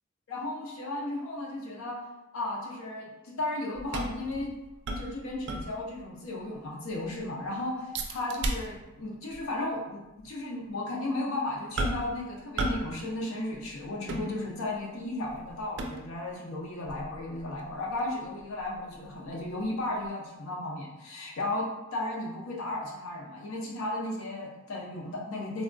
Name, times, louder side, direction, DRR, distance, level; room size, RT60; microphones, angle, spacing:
voice 1, 0.3-2.0 2.3-4.5 5.0-25.6, left 2 dB, 85° left, -2 dB, 0.6 m, -35 dB
sound 1, 3.8-6.1 6.4-6.5 6.9-7.3 7.9-9.0 9.3-9.5 10.2-10.3 11.8-12.2 12.6-13.0 13.2-14.8 15.3-16.3 16.9-19.6 20.0-20.1, right 1 dB, 60° right, 0.4 m, -35 dB
3.4 x 2.2 x 2.5 m, 1.0 s
head